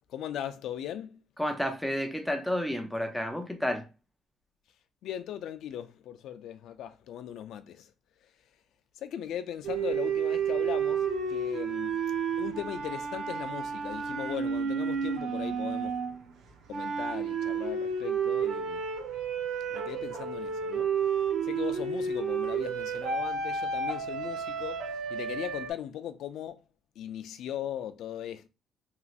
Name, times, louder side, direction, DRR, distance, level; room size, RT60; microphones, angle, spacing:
voice 1, 0.1-1.2 5.0-7.9 9.0-12.0 12.4-16.0 16.7-18.8 19.7-20.9 21.4-26.6 27.0-28.5, left 10 dB, 70° left, 0.3 m, -38 dB
voice 2, 1.4-3.9, equal, 5° left, 0.4 m, -31 dB
sound 1, 9.6-16.2 16.7-25.7, right 6 dB, 75° right, 0.5 m, -31 dB
3.0 x 2.8 x 2.3 m
cardioid pair, 160°, 0 cm